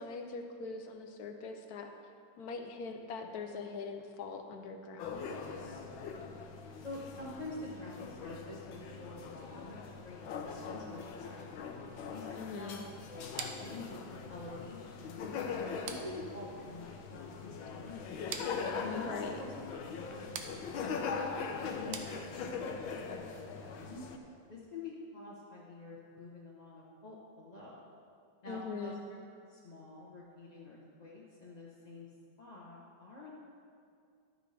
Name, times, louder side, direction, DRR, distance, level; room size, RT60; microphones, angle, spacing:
voice 1, 0.0-1.9 2.4-5.3 12.4-12.8 19.0-19.4 28.5-29.0, left 4 dB, 65° left, 5 dB, 1.0 m, -42 dB
sound 1, 5.0-24.2, left 5 dB, 85° left, 1.5 m, -41 dB
voice 2, 6.8-11.4 12.1-15.2 15.6-18.1 18.7-19.5 20.0-21.1 21.6-24.0 24.5-27.9 28.4-29.2 29.5-32.1 32.4-33.3, left 2 dB, 30° left, -6 dB, 0.7 m, -47 dB
sound 2, 13.4-22.7, right 6 dB, 75° right, 1.4 m, -48 dB
11.5 x 9.0 x 3.3 m, 2.3 s
omnidirectional pair, 2.1 m